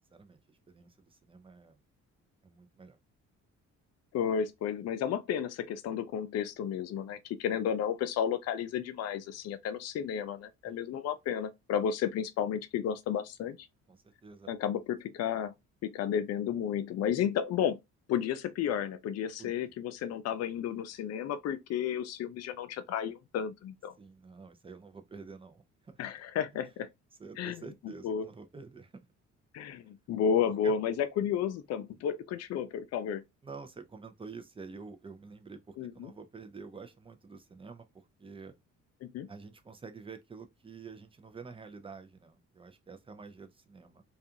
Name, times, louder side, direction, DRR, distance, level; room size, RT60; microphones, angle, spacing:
voice 1, 0.7-1.8 2.4-3.0 10.7-10.8 13.9-14.5 19.4-19.7 24.0-26.0 27.2-29.0 30.6-30.7 33.4-38.5 39.3-44.0, right 4 dB, 20° right, 0.5 m, -48 dB
voice 2, 4.1-13.7 14.5-15.5 15.8-17.8 18.1-23.9 26.0-26.9 27.4-27.6 28.0-28.2 29.5-33.2 35.8-36.1 39.0-39.3, left 8 dB, 60° left, 0.4 m, -32 dB
2.4 x 2.3 x 2.7 m
cardioid pair, 90°, 30 cm